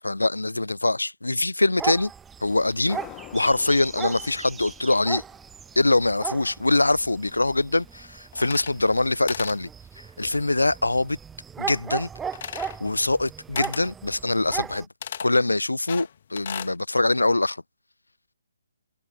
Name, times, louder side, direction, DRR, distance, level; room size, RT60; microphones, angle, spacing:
voice 1, 0.0-2.1 2.4-3.0 3.3-5.2 5.8-9.7 10.2-11.2 11.6-12.1 12.8-14.9 15.2-17.6, left 2 dB, 75° left, 0.9 m, -23 dB
sound 1, 1.8-14.8, right 7 dB, 10° right, 0.6 m, -37 dB
sound 2, 2.9-6.2, left 36 dB, 20° left, 1.3 m, -46 dB
sound 3, 8.3-9.0 9.3-9.6 12.3-12.8 13.6-13.9 15.0-15.3 15.9-16.8, left 9 dB, 40° left, 2.3 m, -35 dB
figure-of-eight pair, 140°, 0 cm